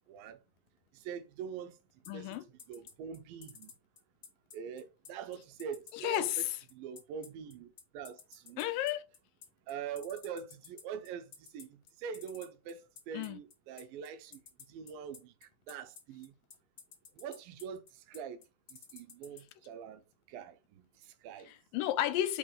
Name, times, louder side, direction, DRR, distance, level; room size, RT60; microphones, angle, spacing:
voice 1, 0.1-0.4 0.9-1.8 2.1-2.4 2.7-3.7 4.5-6.5 6.7-8.6 9.7-14.4 14.7-16.3 17.2-18.4 18.7-20.0 20.3-21.5, right 7 dB, 90° right, 2.5 m, -44 dB
sound 1, 2.0-19.4, left 6 dB, 45° left, 1.6 m, -52 dB
voice 2, 2.1-2.4 5.9-6.6 8.6-9.0 13.1-13.4 21.5-22.4, left 13 dB, 85° left, 2.3 m, -32 dB
5.6 x 5.4 x 3.3 m
omnidirectional pair, 4.1 m